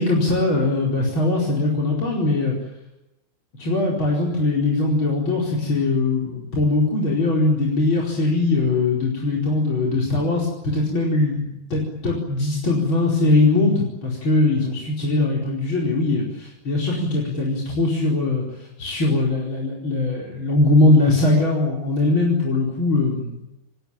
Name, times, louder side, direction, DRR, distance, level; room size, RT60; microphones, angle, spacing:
voice 1, 0.0-2.6 3.6-23.4, left 2 dB, 25° left, 0 dB, 5.0 m, -21 dB
29.5 x 20.5 x 8.9 m, 0.92 s
omnidirectional pair, 5.4 m